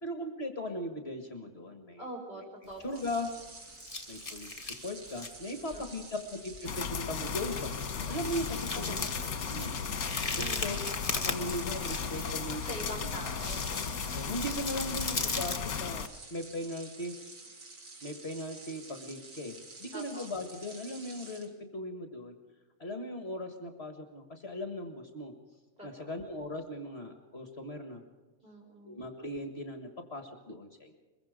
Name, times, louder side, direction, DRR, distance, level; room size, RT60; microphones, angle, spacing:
voice 1, 0.0-2.1 2.8-3.3 4.1-9.1 9.5-9.8 10.3-10.8 11.1-13.1 14.1-17.1 18.0-22.4 22.8-25.3 25.8-28.0 28.8-31.0, left 1 dB, 45° left, 6 dB, 2.0 m, -38 dB
voice 2, 2.0-3.0 8.9-9.0 10.4-10.6 12.7-13.9 19.9-20.3 25.8-26.1 28.4-29.0, equal, 30° right, -1 dB, 6.8 m, -43 dB
sound 1, 2.7-3.5 3.8-5.4 5.7-5.9 6.5-6.6 6.8-7.0 7.4-7.5 8.1-12.5 13.1-15.6, left 3 dB, 25° left, 1.6 m, -38 dB
sound 2, 2.9-21.5, right 3 dB, 85° right, 3.0 m, -50 dB
sound 3, 6.7-16.1, left 6 dB, 75° left, 1.6 m, -36 dB
22.5 x 22.5 x 5.2 m, 1.3 s
omnidirectional pair, 1.5 m